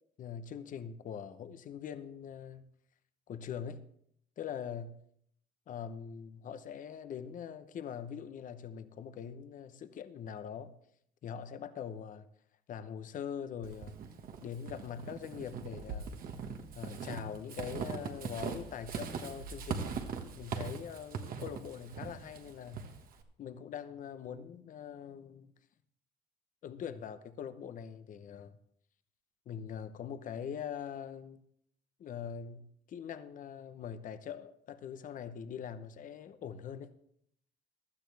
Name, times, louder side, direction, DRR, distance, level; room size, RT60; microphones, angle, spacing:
voice 1, 0.2-2.6 3.3-3.8 4.4-5.0 5.7-10.7 11.2-12.3 12.7-14.0 14.4-16.1 16.7-20.0 20.4-23.0 23.4-25.5 26.6-28.6 29.5-31.4 32.0-36.9, left 8 dB, 50° left, 0.9 m, -43 dB
Walk footsteps / Squeak, 13.6-23.2, right 6 dB, 60° right, 1.4 m, -41 dB
15.5 x 12.0 x 3.4 m
cardioid pair, 110°, 17 cm